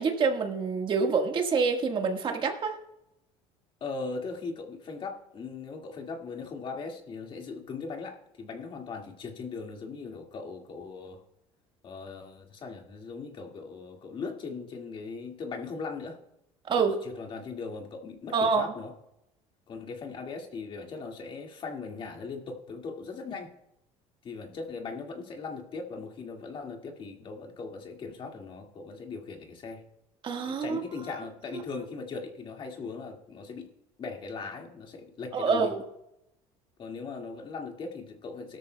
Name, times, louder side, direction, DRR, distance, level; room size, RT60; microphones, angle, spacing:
voice 1, 0.0-2.7 16.7-17.0 18.3-18.7 30.2-30.8 31.5-31.6 35.3-35.8, right 5 dB, 40° right, 4 dB, 1.6 m, -26 dB
voice 2, 3.8-11.2 11.8-16.2 16.8-18.9 19.7-23.5 24.2-29.8 30.5-33.7 34.0-35.7 36.8-38.6, left 4 dB, 40° left, 2 dB, 2.0 m, -39 dB
18.0 x 13.0 x 2.3 m, 0.83 s
cardioid pair, 115°, 13 cm